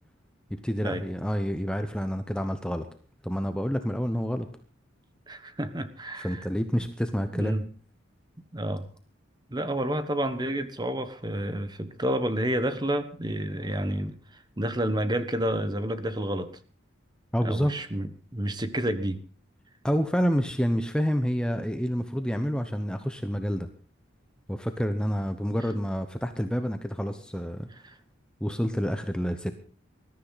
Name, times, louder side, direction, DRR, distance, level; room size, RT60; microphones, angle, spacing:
voice 1, 0.5-2.9 3.2-4.5 6.2-7.6 17.3-17.9 19.8-23.7 24.5-27.7 28.4-29.5, equal, 5° left, 0.9 m, -28 dB
voice 2, 5.3-6.5 7.3-7.6 8.5-8.9 9.5-14.2 14.6-16.6 17.4-19.2 27.8-28.0, right 1 dB, 20° right, 1.2 m, -30 dB
21.0 x 13.5 x 4.1 m
head